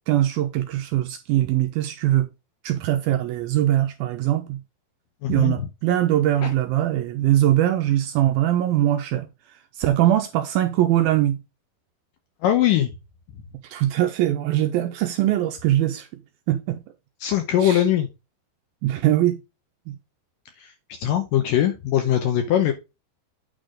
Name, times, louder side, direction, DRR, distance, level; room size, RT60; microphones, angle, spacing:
voice 1, 0.1-2.3 2.6-4.6 5.3-9.3 9.8-11.4 13.6-16.1 16.5-16.8 17.6-17.8 18.8-19.4 19.9-20.0, right 13 dB, 80° right, 2.2 m, -21 dB
voice 2, 5.2-5.7 6.4-6.5 12.4-12.9 17.2-18.1 20.6-20.7 21.0-22.7, left 11 dB, 75° left, 2.1 m, -21 dB
8.9 x 4.1 x 4.9 m
omnidirectional pair, 4.7 m